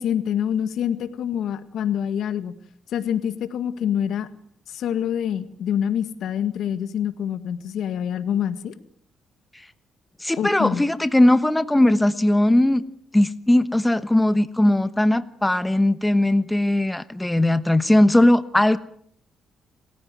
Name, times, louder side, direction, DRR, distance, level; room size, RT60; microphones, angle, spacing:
voice 1, 0.0-2.6 2.9-4.3 4.7-8.7 10.4-10.8, left 9 dB, 75° left, 13 dB, 1.8 m, -26 dB
voice 2, 10.2-12.8 13.1-18.8, left 1 dB, 10° left, 14 dB, 1.2 m, -19 dB
27.0 x 15.5 x 9.3 m, 0.65 s
cardioid pair, 90°, 0 cm